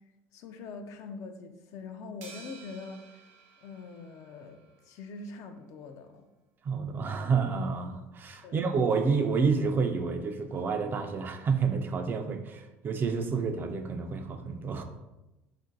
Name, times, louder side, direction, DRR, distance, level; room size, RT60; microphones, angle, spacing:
voice 1, 0.3-3.2 3.6-6.3 8.4-8.6, left 4 dB, 60° left, 6 dB, 0.4 m, -43 dB
sound 1, 2.2-4.7, right 5 dB, 80° right, 0.5 m, -52 dB
voice 2, 6.6-14.8, right 5 dB, 35° right, 6 dB, 0.4 m, -29 dB
2.5 x 2.1 x 3.8 m, 0.99 s
supercardioid pair, 95°, 6 cm